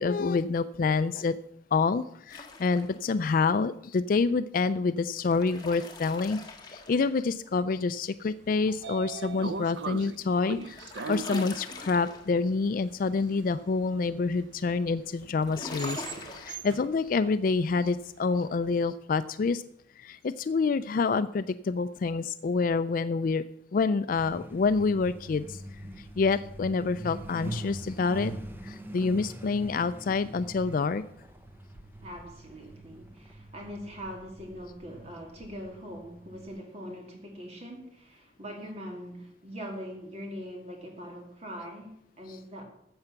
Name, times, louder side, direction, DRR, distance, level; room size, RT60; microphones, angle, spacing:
voice 1, 0.0-1.4 1.7-6.4 6.7-19.6 20.0-23.4 23.7-25.6 26.0-28.3 28.6-31.0, left 4 dB, 50° left, 13 dB, 0.4 m, -27 dB
sound 1, 2.3-3.2 5.0-7.5 10.1-12.5 15.4-16.6, left 3 dB, 25° left, 1.5 m, -43 dB
Train / Sliding door, 8.2-18.4, right 5 dB, 80° right, 0.5 m, -41 dB
Truck, 24.2-36.5, right 1 dB, 10° right, 0.9 m, -43 dB
voice 2, 32.0-42.7, equal, 35° right, 1 dB, 2.5 m, -42 dB
13.5 x 7.8 x 5.8 m, 0.74 s
head